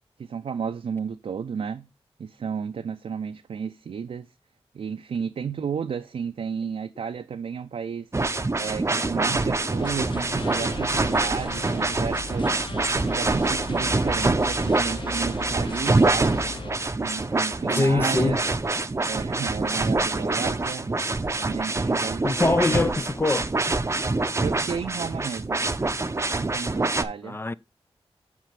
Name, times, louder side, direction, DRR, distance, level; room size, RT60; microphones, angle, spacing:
voice 1, 0.2-1.9 2.2-4.3 4.7-8.1 8.6-16.5 17.0-18.4 19.1-21.0 21.3-22.9 24.4-25.6 26.4-27.4, right 6 dB, 70° right, 0.5 m, -33 dB
sound 1, 8.1-27.0, right 3 dB, 25° right, 0.6 m, -25 dB
sound 2, 9.8-16.7, left 3 dB, 50° left, 1.3 m, -37 dB
voice 2, 17.8-18.4 22.2-23.8 27.2-27.5, left 3 dB, 20° left, 0.3 m, -23 dB
6.1 x 4.4 x 5.7 m
cardioid pair, 65°, 10 cm